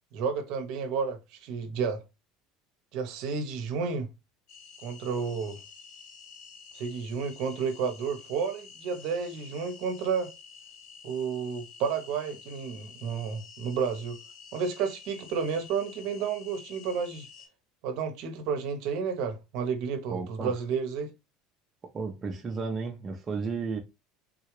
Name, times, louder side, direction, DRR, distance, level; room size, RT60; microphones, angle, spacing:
voice 1, 0.1-2.0 2.9-4.1 4.8-5.6 6.7-10.3 11.0-14.2 14.5-17.3 17.8-21.1, right 6 dB, 65° right, 0.8 m, -31 dB
sound 1, 4.5-17.5, left 6 dB, 55° left, 0.9 m, -50 dB
voice 2, 20.1-20.6 21.9-23.8, right 4 dB, 25° right, 0.6 m, -33 dB
3.6 x 2.4 x 3.0 m
supercardioid pair, 130°, 0 cm